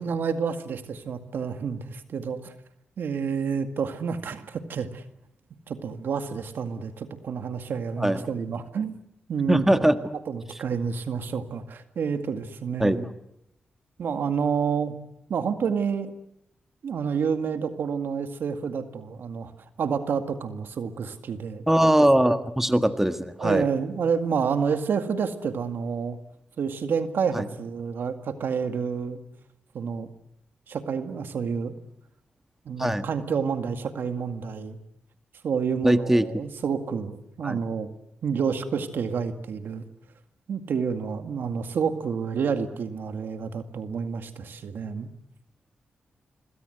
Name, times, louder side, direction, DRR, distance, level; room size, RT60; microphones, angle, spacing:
voice 1, 0.0-2.5 3.0-5.0 5.7-9.0 9.3-9.8 10.1-13.1 14.0-14.9 15.3-16.1 16.8-19.5 19.8-21.6 23.4-26.2 26.6-29.2 29.7-30.1 30.7-31.7 32.7-34.8 35.4-37.9 38.2-39.8 40.5-45.1, right 6 dB, 75° right, 8 dB, 2.0 m, -29 dB
voice 2, 9.5-10.0 12.8-13.1 21.7-23.7 27.3-27.4 32.8-33.0 35.8-36.3 37.4-37.6, right 1 dB, 10° right, 8 dB, 1.6 m, -21 dB
26.0 x 22.0 x 8.0 m, 0.80 s
cardioid pair, 70°, 4 cm